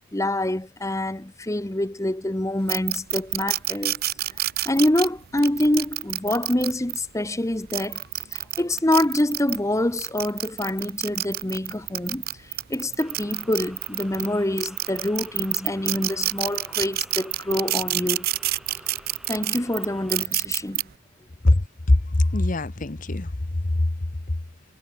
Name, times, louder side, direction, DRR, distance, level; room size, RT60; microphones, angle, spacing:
voice 1, 0.1-4.0 4.7-8.0 8.3-18.3 19.3-20.8, left 1 dB, 15° left, 0.8 m, -26 dB
sound 1, 2.7-7.0 7.5-9.6 10.0-14.3 14.6-20.8, right 16 dB, 45° right, 0.5 m, -27 dB
sound 2, 13.0-20.3, equal, ahead, 1.7 m, -48 dB
voice 2, 21.4-23.3 23.6-23.9, left 2 dB, 35° left, 0.9 m, -21 dB
head